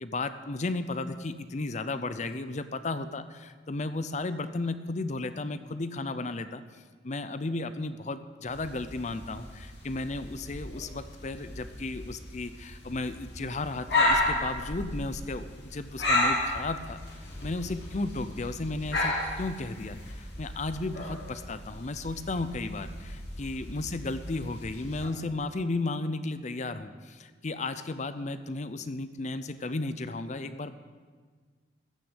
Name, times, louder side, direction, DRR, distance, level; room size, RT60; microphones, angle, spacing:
voice 1, 0.0-6.6 7.0-30.8, left 2 dB, 40° left, 12 dB, 0.6 m, -34 dB
sound 1, 8.5-25.1, left 1 dB, 60° left, 2.5 m, -33 dB
14.0 x 6.4 x 8.1 m, 1.5 s
head